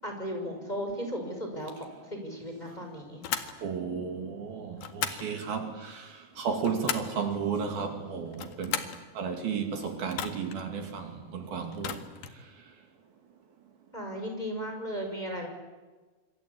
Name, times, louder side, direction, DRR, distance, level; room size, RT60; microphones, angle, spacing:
voice 1, 0.0-3.2 13.9-15.5, equal, 10° left, 6.3 m, -36 dB
sound 1, 3.2-3.6 4.8-5.3 6.3-7.2 8.3-9.0 10.1-10.6 11.7-12.4, left 9 dB, 65° left, 3.7 m, -35 dB
voice 2, 3.6-8.9 9.2-12.0, right 6 dB, 65° right, 4.1 m, -33 dB
26.5 x 26.0 x 8.6 m
omnidirectional pair, 4.9 m